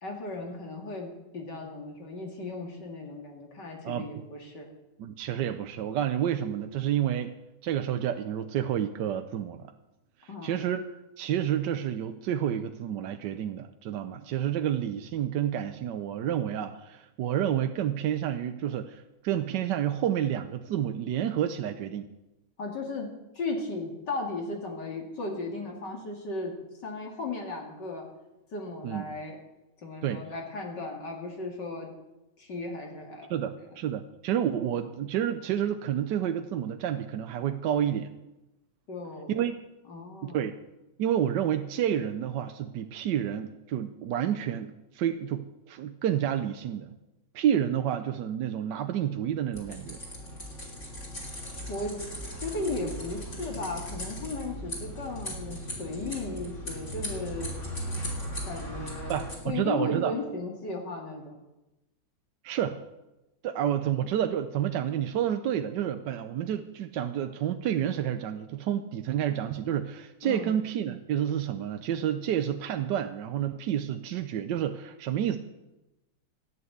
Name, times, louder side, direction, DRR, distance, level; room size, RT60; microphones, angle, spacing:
voice 1, 0.0-4.7 10.3-10.6 22.6-23.1 23.3-26.5 26.8-28.0 28.5-29.4 29.8-31.9 32.4-33.3 38.9-39.3 39.9-40.5 51.7-52.0 52.4-57.5 58.4-61.4 70.2-70.5, left 2 dB, 55° left, 1 dB, 2.8 m, -36 dB
voice 2, 3.8-4.2 5.0-7.3 7.6-9.7 10.2-10.9 11.2-22.1 28.8-29.0 30.0-30.2 33.3-38.1 39.3-39.6 40.2-40.5 41.0-46.9 47.3-50.0 59.1-60.1 62.4-62.8 63.4-75.4, right 10 dB, 70° right, 7 dB, 1.2 m, -29 dB
sound 1, 49.5-59.4, equal, 35° left, 3.5 m, -38 dB
13.5 x 9.5 x 7.9 m, 0.97 s
omnidirectional pair, 2.3 m